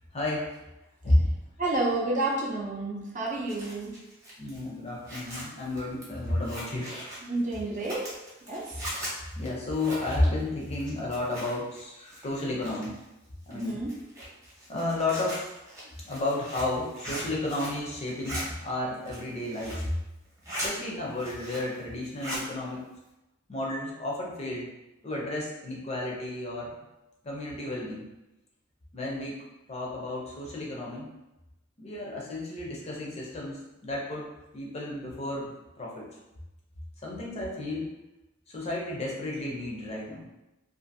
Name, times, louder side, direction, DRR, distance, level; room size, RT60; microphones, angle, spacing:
voice 1, 0.1-0.6 1.0-1.3 4.4-7.0 8.7-8.9 9.4-12.9 13.5-13.8 14.7-15.5 16.0-19.9 20.6-22.8 23.5-24.7 25.0-26.7 27.2-28.1 28.9-29.4 29.7-31.1 31.8-35.5 35.8-36.1 37.0-38.0 38.5-40.3, left 2 dB, 30° left, -3 dB, 0.5 m, -32 dB
voice 2, 1.6-4.0 7.2-8.2 8.5-8.7 13.5-13.9, right 2 dB, 40° right, -3 dB, 0.5 m, -30 dB
Zipper (clothing), 3.2-11.8 12.1-13.0 13.5-17.8 18.1-18.4 18.9-19.9 20.2-20.7 21.1-21.8 22.0-22.5, equal, 15° right, 0.8 m, -40 dB
2.5 x 2.5 x 2.6 m, 0.96 s
head